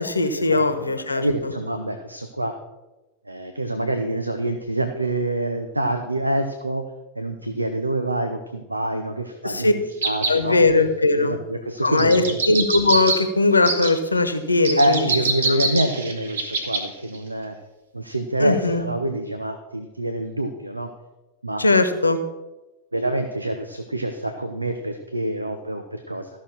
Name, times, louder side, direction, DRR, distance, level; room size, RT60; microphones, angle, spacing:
voice 1, 0.0-1.5 9.4-9.7 10.3-11.4 11.8-15.1 18.4-18.8 21.6-22.2, left 2 dB, 80° left, 9 dB, 1.1 m, -19 dB
voice 2, 1.1-2.5 3.3-6.8 7.2-10.6 11.1-12.4 14.8-17.5 17.9-20.9 21.4-21.6 22.9-26.3, right 1 dB, 85° right, 7 dB, 0.8 m, -26 dB
sound 1, 10.0-10.4 12.0-13.2 13.7-13.9 14.6-16.8 17.1-17.2, right 3 dB, 65° right, 1.8 m, -24 dB
14.5 x 6.3 x 6.3 m, 1.1 s
figure-of-eight pair, 90°, 0 cm